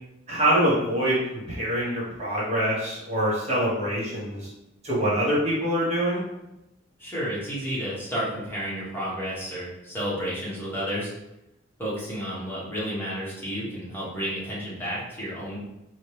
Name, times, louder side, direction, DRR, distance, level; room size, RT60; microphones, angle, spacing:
voice 1, 0.3-4.5 4.8-6.2, equal, 35° right, -7 dB, 1.2 m, -25 dB
voice 2, 7.0-11.1 11.8-15.6, equal, 10° left, -8 dB, 1.4 m, -31 dB
4.1 x 3.0 x 3.3 m, 0.90 s
head